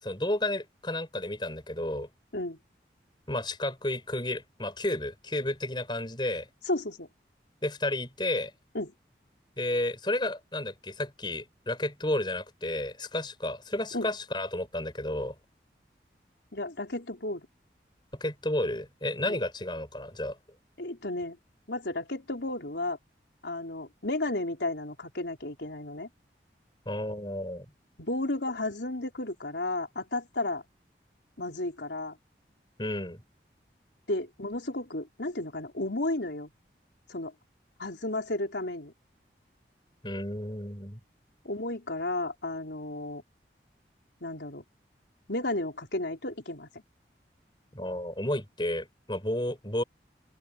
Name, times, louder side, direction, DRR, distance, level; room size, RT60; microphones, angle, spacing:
voice 1, 0.0-2.1 3.3-6.5 7.6-8.5 9.6-15.3 18.1-20.4 26.9-27.7 32.8-33.2 40.0-41.0 47.7-49.8, left 1 dB, 25° left, 6.0 m, -32 dB
voice 2, 6.7-7.1 8.7-8.9 13.9-14.1 16.5-17.4 19.3-19.4 20.8-21.4 21.7-23.0 23.4-26.1 28.0-30.6 31.4-32.2 34.1-36.5 37.1-37.3 37.8-38.9 41.4-43.2 44.2-44.6 45.3-46.8, left 2 dB, 80° left, 4.1 m, -33 dB
open air
head